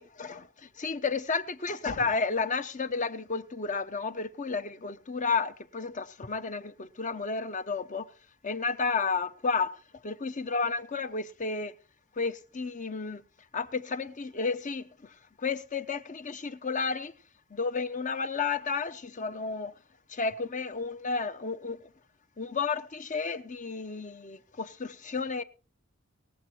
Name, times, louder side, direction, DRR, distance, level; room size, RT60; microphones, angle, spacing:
voice 1, 0.0-0.5 0.8-8.1 8.4-9.7 10.0-11.7 12.2-13.2 13.5-14.8 15.4-17.1 17.5-19.7 20.1-21.8 22.4-25.4, left 4 dB, 40° left, 0.9 m, -32 dB
19.5 x 7.7 x 4.4 m
head